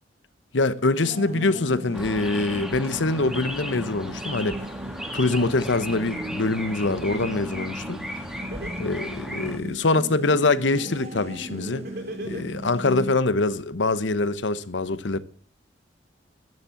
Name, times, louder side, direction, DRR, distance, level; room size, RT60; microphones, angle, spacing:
voice 1, 0.5-4.7 5.1-8.3 8.8-11.9 12.2-15.2, left 3 dB, 80° left, 0.9 m, -24 dB
sound 1, 1.0-13.2, equal, 35° right, 1.2 m, -37 dB
sound 2, 1.9-9.6, equal, 5° right, 1.5 m, -36 dB
Laughter, 8.5-10.0 11.7-12.9, right 1 dB, 60° right, 3.7 m, -37 dB
12.0 x 11.0 x 7.0 m
head